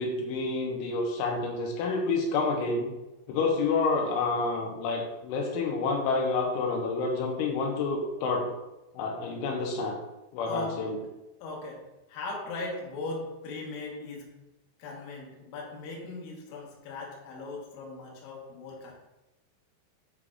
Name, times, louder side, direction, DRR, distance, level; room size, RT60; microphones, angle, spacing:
voice 1, 0.0-2.9 3.3-8.5 8.9-10.0 10.3-11.0, left 3 dB, 90° left, 1 dB, 3.2 m, -28 dB
voice 2, 10.4-10.8 11.4-14.4 14.8-18.9, left 3 dB, 65° left, -2 dB, 2.5 m, -39 dB
8.4 x 4.9 x 2.4 m, 0.97 s
omnidirectional pair, 5.4 m